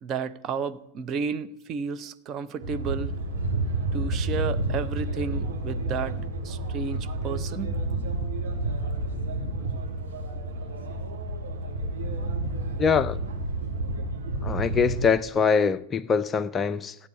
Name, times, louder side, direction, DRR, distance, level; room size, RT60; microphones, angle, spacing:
voice 1, 0.0-3.1 3.9-6.2 6.4-7.7, right 6 dB, 30° right, 0.8 m, -32 dB
sound 1, 2.6-15.1, right 2 dB, 65° right, 3.3 m, -30 dB
voice 2, 12.8-13.2 14.4-17.0, left 6 dB, 20° left, 0.4 m, -23 dB
15.5 x 8.8 x 8.0 m
figure-of-eight pair, 90°, 0 cm